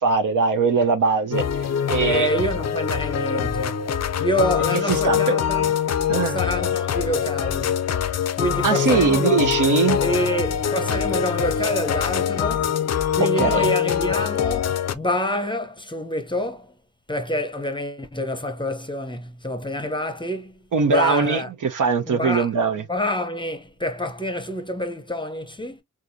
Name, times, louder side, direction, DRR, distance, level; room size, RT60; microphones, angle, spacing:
voice 1, 0.0-1.4 1.9-2.3 4.9-5.4 6.1-6.4 8.6-10.0 13.4-13.7 20.7-22.8, right 4 dB, 70° right, 0.7 m, -21 dB
sound 1, 1.3-14.9, left 8 dB, 55° left, 0.5 m, -23 dB
voice 2, 2.0-3.9 4.2-5.8 6.2-7.8 8.4-9.4 10.0-12.7 13.1-16.7 17.1-21.5 22.1-22.5 22.9-25.8, equal, 15° left, 0.7 m, -27 dB
3.7 x 2.7 x 2.6 m
wide cardioid pair, 80°, 33 cm